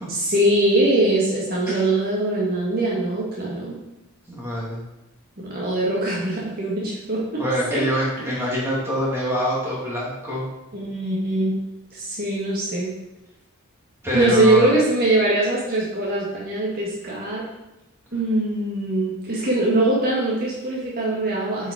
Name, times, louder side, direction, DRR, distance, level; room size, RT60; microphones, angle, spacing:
voice 1, 0.1-3.8 5.4-7.4 7.7-7.8 8.2-8.3 10.7-11.6 11.9-12.9 14.1-17.4 18.1-21.7, right 2 dB, 45° right, -5 dB, 1.7 m, -22 dB
voice 2, 4.3-4.8 7.4-10.5 14.0-14.7, equal, 10° right, -6 dB, 2.6 m, -25 dB
7.9 x 5.5 x 4.8 m, 0.98 s
head